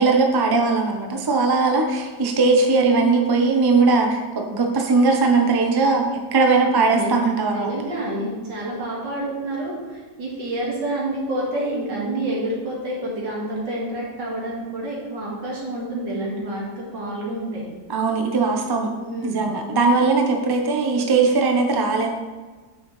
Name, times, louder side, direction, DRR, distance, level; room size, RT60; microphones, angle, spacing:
voice 1, 0.0-6.1 6.3-7.7 17.9-18.9 19.2-22.1, right 3 dB, 30° right, 2 dB, 0.4 m, -19 dB
voice 2, 6.3-7.1 7.5-17.7 19.0-19.5, right 1 dB, 90° right, -4 dB, 2.7 m, -28 dB
9.5 x 6.6 x 3.2 m, 1.3 s
omnidirectional pair, 1.9 m